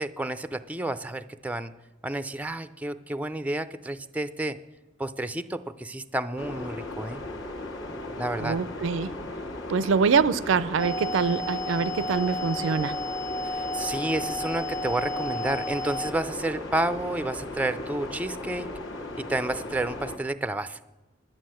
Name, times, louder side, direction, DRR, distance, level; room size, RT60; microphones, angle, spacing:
voice 1, 0.0-1.7 2.0-4.6 5.0-7.2 8.2-8.6 13.5-18.7 19.2-20.8, right 2 dB, 5° right, 0.4 m, -30 dB
sound 1, 6.4-20.2, left 2 dB, 70° left, 1.6 m, -37 dB
voice 2, 8.4-9.1 9.7-13.0, right 5 dB, 75° right, 0.4 m, -24 dB
sound 2, 10.8-16.1, left 1 dB, 40° left, 0.6 m, -33 dB
11.5 x 8.9 x 7.6 m
head